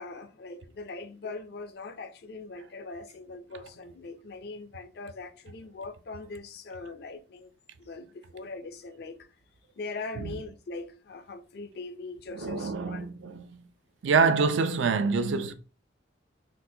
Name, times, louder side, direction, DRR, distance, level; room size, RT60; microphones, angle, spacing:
voice 1, 0.0-7.5 7.8-9.2 9.8-13.1, left 3 dB, 55° left, 0.4 m, -41 dB
voice 2, 12.3-13.6 14.0-15.5, right 5 dB, 75° right, 0.4 m, -26 dB
3.8 x 2.1 x 2.7 m
head